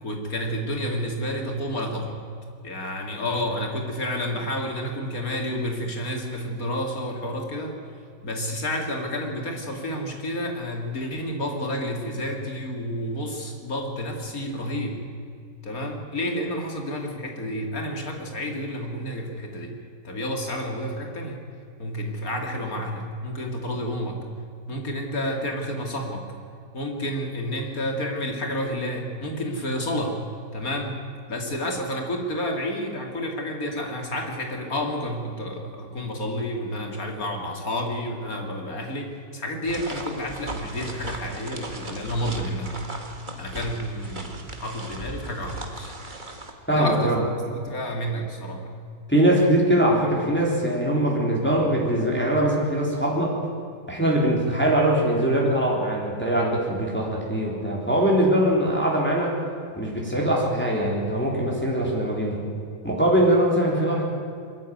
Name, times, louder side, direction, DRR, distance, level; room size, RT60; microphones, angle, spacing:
voice 1, 0.0-2.2 2.6-7.8 8.2-15.0 15.6-19.7 20.0-21.4 21.8-24.2 24.7-26.3 26.7-30.2 30.5-31.0 31.3-42.7 43.4-46.0 46.7-48.9, equal, 60° left, 2 dB, 3.2 m, -30 dB
sound 1, 39.6-46.5, right 2 dB, 30° right, 1.9 m, -37 dB
voice 2, 46.7-47.2 49.1-53.4 53.9-59.4 59.8-62.4 62.8-64.0, right 1 dB, 5° left, -3 dB, 3.8 m, -22 dB
22.0 x 14.0 x 9.4 m, 2.4 s
omnidirectional pair, 1.7 m